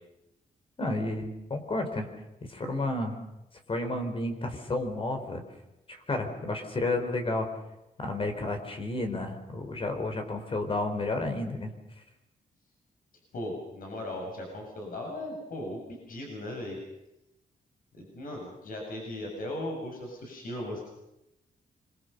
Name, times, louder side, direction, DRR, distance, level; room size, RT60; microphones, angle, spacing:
voice 1, 0.8-2.1 2.4-3.2 3.7-5.4 6.1-7.5 8.0-11.7, left 2 dB, 35° left, 5 dB, 4.6 m, -31 dB
voice 2, 13.3-16.8 17.9-20.9, left 1 dB, 70° left, 1 dB, 6.9 m, -37 dB
26.0 x 22.5 x 6.9 m, 0.90 s
cardioid pair, 105°, 15 cm